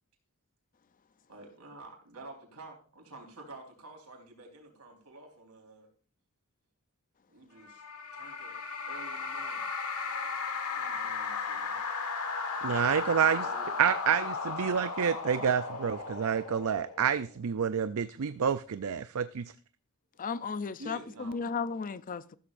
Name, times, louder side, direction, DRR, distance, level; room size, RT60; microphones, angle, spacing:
voice 1, 1.3-5.9 7.3-7.8 8.1-9.7 10.8-11.8 13.1-13.8 20.8-21.4, right 2 dB, 90° right, 4.2 m, -49 dB
sound 1, 7.6-17.3, left 4 dB, 75° left, 1.7 m, -35 dB
voice 2, 12.6-13.5 13.8-19.5, right 7 dB, 65° right, 0.5 m, -28 dB
voice 3, 20.2-22.4, left 5 dB, 35° left, 0.5 m, -35 dB
14.5 x 13.0 x 2.6 m
head